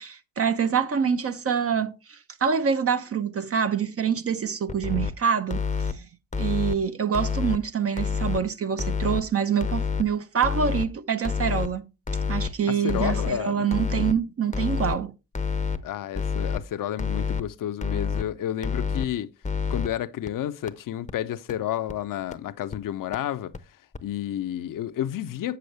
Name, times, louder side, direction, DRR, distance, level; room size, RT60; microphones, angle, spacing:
voice 1, 0.0-6.1 6.4-11.8 12.3-15.1, right 7 dB, 35° right, 0.6 m, -26 dB
sound 1, 4.7-5.1 5.5-5.9 6.3-6.7 7.1-7.6 8.0-8.4 8.8-9.2 9.6-10.0 10.4-10.9 11.2-11.7 12.1-12.5 12.9-13.3 13.7-14.1 14.5-15.0 15.3-15.8 16.1-16.6 17.0-17.4 17.8-18.2 18.6-19.1 19.4-19.9 20.3-20.4 20.7-20.8 21.1-21.2 21.5-21.6 21.9-22.0 22.3-22.4 22.7-22.8 23.1-23.2 23.5-23.6 23.9-24.0, left 6 dB, 15° left, 0.7 m, -27 dB
voice 2, 12.7-13.7 15.8-19.3 19.7-23.5 24.0-25.6, left 12 dB, 50° left, 0.7 m, -31 dB
7.6 x 6.8 x 3.3 m
hypercardioid pair, 50°, 42 cm